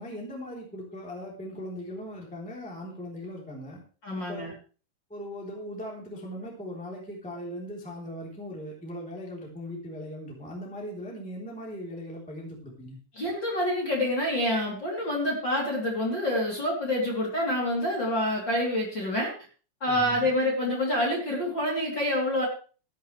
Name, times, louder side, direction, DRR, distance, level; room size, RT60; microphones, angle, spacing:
voice 1, 0.0-3.8 4.1-4.5 5.1-13.0 19.9-20.3, equal, ahead, -2 dB, 2.3 m, -39 dB
voice 2, 4.0-4.5 13.2-19.3 19.8-22.4, left 1 dB, 25° left, -3 dB, 3.1 m, -27 dB
14.5 x 12.5 x 3.3 m, 0.38 s
omnidirectional pair, 6.0 m